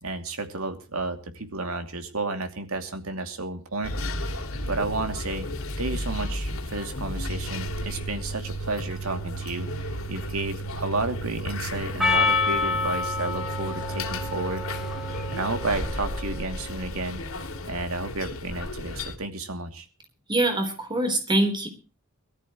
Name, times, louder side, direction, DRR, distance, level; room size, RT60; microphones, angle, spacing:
voice 1, 0.0-5.5 5.8-14.6 15.3-17.2 17.7-19.9, right 2 dB, 80° right, 6 dB, 2.7 m, -32 dB
sound 1, 3.8-19.2, equal, 70° left, 2.5 m, -33 dB
Percussion, 12.0-16.6, left 4 dB, ahead, 2.8 m, -28 dB
voice 2, 20.3-21.7, right 1 dB, 20° right, 6 dB, 4.0 m, -24 dB
22.5 x 13.5 x 3.1 m, 0.34 s
head